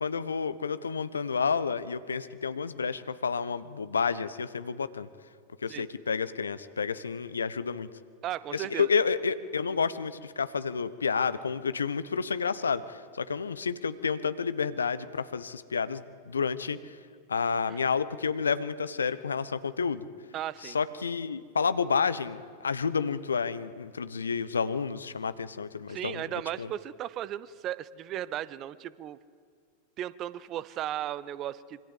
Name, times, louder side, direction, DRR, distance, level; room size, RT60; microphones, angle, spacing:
voice 1, 0.0-5.1 5.6-7.9 8.5-17.0 17.3-20.0 20.6-26.7, left 5 dB, 75° left, 14 dB, 1.0 m, -30 dB
voice 2, 8.2-8.9 17.7-17.8 20.3-20.8 25.9-29.2 30.0-31.8, right 12 dB, 35° right, 18 dB, 0.9 m, -36 dB
25.5 x 25.0 x 8.1 m, 2.1 s
figure-of-eight pair, 90°, 0 cm